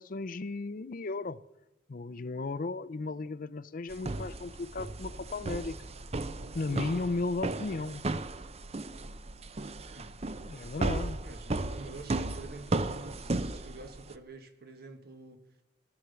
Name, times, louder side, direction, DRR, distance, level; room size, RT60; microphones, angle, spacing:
voice 1, 0.0-1.4 1.9-5.8 6.5-8.0 10.4-11.2, left 3 dB, 50° left, 0.5 m, -35 dB
sound 1, 3.9-14.1, right 2 dB, 35° right, 0.6 m, -35 dB
voice 2, 11.2-15.4, right 2 dB, 60° right, 1.8 m, -47 dB
17.0 x 11.5 x 6.9 m
head